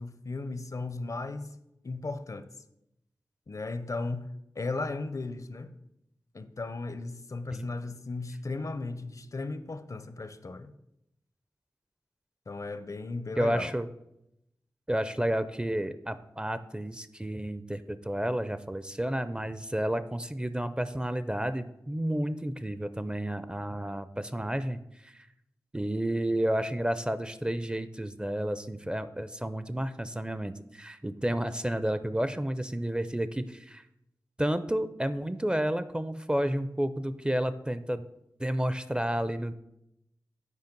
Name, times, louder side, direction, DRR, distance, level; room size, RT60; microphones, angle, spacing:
voice 1, 0.0-1.6 1.8-2.5 3.5-5.7 6.3-10.7 12.5-13.7, left 3 dB, 55° left, 0.5 m, -36 dB
voice 2, 13.4-13.9 14.9-25.3 25.7-33.8 34.4-38.0 38.4-39.5, right 1 dB, 15° right, 0.4 m, -31 dB
8.2 x 4.9 x 5.2 m
wide cardioid pair, 70°, 7 cm